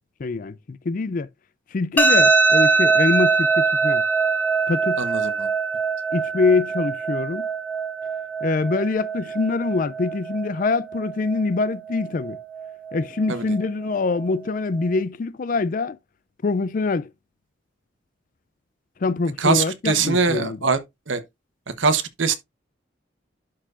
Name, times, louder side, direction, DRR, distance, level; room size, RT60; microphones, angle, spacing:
voice 1, 0.2-1.3 1.7-4.0 4.7-5.0 6.1-7.5 8.4-12.4 12.9-16.0 16.4-17.1 19.0-20.7, left 4 dB, 45° left, 0.4 m, -24 dB
sound 1, 2.0-14.9, right 4 dB, 10° left, 0.9 m, -23 dB
voice 2, 5.0-5.5 13.3-13.4 19.4-20.8 21.1-21.2 21.8-22.4, right 4 dB, 80° right, 1.0 m, -22 dB
11.5 x 4.5 x 2.5 m
head